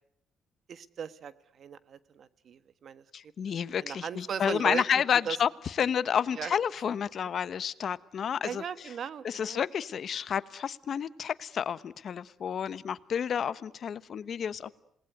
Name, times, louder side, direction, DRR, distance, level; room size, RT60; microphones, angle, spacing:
voice 1, 0.7-3.0 3.5-5.4 6.3-6.5 8.4-9.6, right 7 dB, 60° right, 14 dB, 1.4 m, -38 dB
voice 2, 3.1-5.5 5.8-8.6 9.2-14.7, left 8 dB, 55° left, 16 dB, 1.0 m, -30 dB
27.5 x 19.5 x 9.5 m, 0.75 s
cardioid pair, 90°, 0 cm